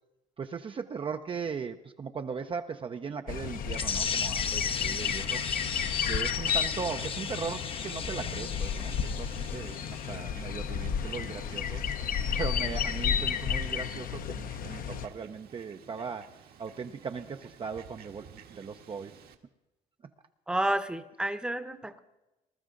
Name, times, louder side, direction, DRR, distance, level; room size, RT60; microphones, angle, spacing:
voice 1, 0.4-5.4 6.1-19.2, right 6 dB, 30° right, 6 dB, 0.6 m, -38 dB
sound 1, 3.3-15.1, left 8 dB, 55° left, 0.9 m, -32 dB
sound 2, 3.7-10.2, left 6 dB, 35° left, 0.8 m, -35 dB
Fowl, 5.7-19.3, right 7 dB, 65° right, 1.5 m, -53 dB
voice 2, 20.5-22.0, right 1 dB, 5° right, 11 dB, 0.9 m, -30 dB
20.5 x 12.5 x 3.8 m, 1.0 s
cardioid pair, 110°, 17 cm